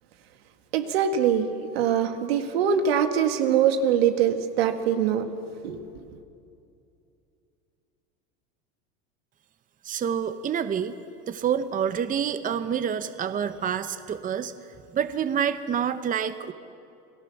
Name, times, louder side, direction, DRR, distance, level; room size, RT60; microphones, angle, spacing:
voice 1, 0.7-5.3 5.6-5.8, right 8 dB, 85° right, 7 dB, 2.0 m, -23 dB
voice 2, 9.8-11.0 11.3-14.5 14.9-16.5, right 8 dB, 25° right, 11 dB, 1.0 m, -27 dB
29.0 x 18.0 x 7.1 m, 2.6 s
supercardioid pair, 115°, 30 cm